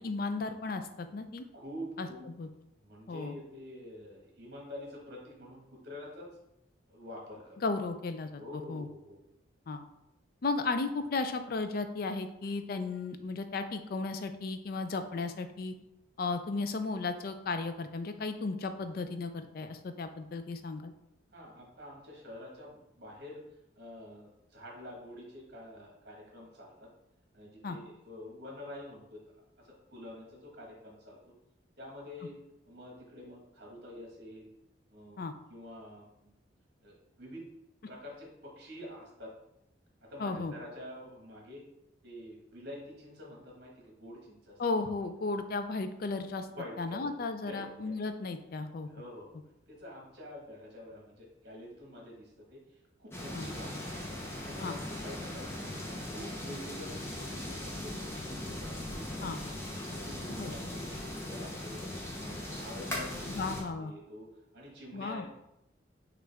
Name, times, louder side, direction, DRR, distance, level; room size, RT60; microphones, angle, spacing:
voice 1, 0.0-1.4 2.0-2.5 3.1-3.4 7.6-8.9 9.7-9.8 10.4-15.7 16.2-20.9 27.6-27.8 35.2-35.3 40.2-40.5 44.6-46.5 46.8-48.9 53.3-53.5 54.6-54.8 59.2-59.4 60.4-60.5 63.3-63.9 64.9-65.2, left 3 dB, 50° left, 9 dB, 0.4 m, -35 dB
voice 2, 1.5-2.3 2.8-6.3 6.9-7.6 8.4-9.2 21.3-23.4 23.8-26.9 27.3-29.2 29.6-31.3 31.8-32.4 32.7-34.5 34.9-35.2 35.5-36.4 36.8-37.4 37.9-39.3 40.0-41.6 42.0-44.6 46.5-47.0 47.4-48.0 48.9-49.4 49.7-52.6 53.0-53.8 54.3-55.5 56.1-58.4 58.9-59.3 59.7-61.9 62.2-64.3 64.5-65.3, left 1 dB, 55° right, -2 dB, 1.4 m, -47 dB
sound 1, 53.1-63.6, left 1 dB, 15° left, 0.7 m, -39 dB
6.2 x 2.5 x 3.4 m, 0.88 s
head